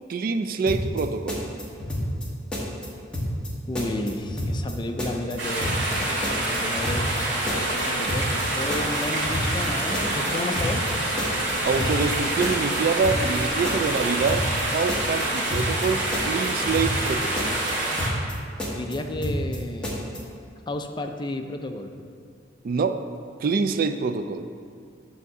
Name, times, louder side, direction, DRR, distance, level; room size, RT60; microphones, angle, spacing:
voice 1, 0.1-1.4 11.6-17.5 22.6-23.0 23.4-24.5, right 4 dB, 50° right, 9 dB, 0.3 m, -26 dB
sound 1, 0.7-1.0 1.3-2.3 2.5-2.9 3.1-3.5 3.8-4.7 5.0-5.3 5.6-6.0 6.2-7.2 7.5-7.8 8.1-8.4 8.7-9.7 9.9-10.3 10.6-10.9 11.2-12.2 12.4-12.8 13.0-13.4 13.6-14.6 14.9-15.2 15.5-15.9 16.1-17.1 17.4-17.7 18.0-18.3 18.6-19.6 19.8-20.2, equal, 5° left, 1.3 m, -29 dB
voice 2, 3.7-7.5 7.8-10.8 18.7-20.0 20.7-21.9, left 1 dB, 25° left, 5 dB, 0.4 m, -32 dB
sound 2, 5.4-18.1, right 1 dB, 85° right, 1.9 m, -27 dB
sound 3, 5.6-14.3, left 1 dB, 70° left, 1.0 m, -39 dB
9.3 x 3.6 x 6.6 m, 2.2 s
head